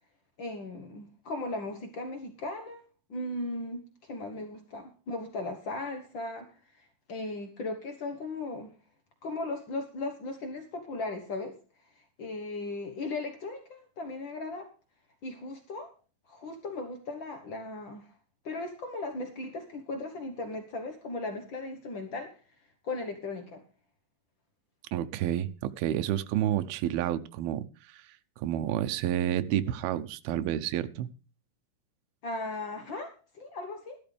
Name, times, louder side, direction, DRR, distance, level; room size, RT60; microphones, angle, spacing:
voice 1, 0.4-2.8 3.1-8.7 9.2-11.6 12.0-14.7 15.2-15.9 16.3-18.1 18.4-22.3 22.8-23.6 32.2-34.0, left 2 dB, 80° left, 6 dB, 1.0 m, -37 dB
voice 2, 24.9-28.0 28.4-31.1, right 11 dB, 85° right, 10 dB, 2.6 m, -30 dB
14.5 x 12.0 x 3.4 m, 0.36 s
omnidirectional pair, 4.3 m